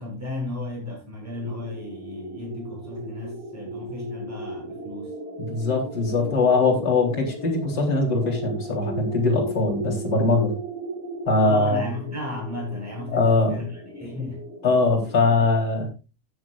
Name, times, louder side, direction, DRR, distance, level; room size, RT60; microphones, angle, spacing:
voice 1, 0.0-5.1 5.8-5.9 11.4-14.4, left 2 dB, 5° right, 6.9 m, -34 dB
sound 1, 1.3-15.5, right 1 dB, 80° right, 5.9 m, -36 dB
voice 2, 5.4-10.5 11.3-11.9 13.1-13.5 14.6-15.9, left 3 dB, 25° left, 4.1 m, -21 dB
16.5 x 9.9 x 2.6 m
omnidirectional pair, 5.1 m